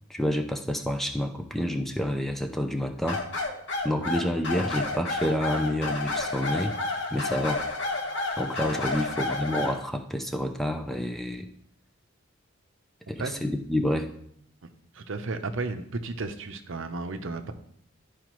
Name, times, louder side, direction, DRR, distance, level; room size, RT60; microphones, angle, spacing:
voice 1, 0.1-3.2 3.8-6.7 7.1-7.6 8.4-11.5 13.1-14.1, left 1 dB, ahead, 5 dB, 0.5 m, -28 dB
sound 1, 3.1-9.8, left 2 dB, 60° left, 1.2 m, -30 dB
voice 2, 14.9-17.5, right 3 dB, 70° right, 8 dB, 0.7 m, -33 dB
12.0 x 4.9 x 3.1 m, 0.69 s
head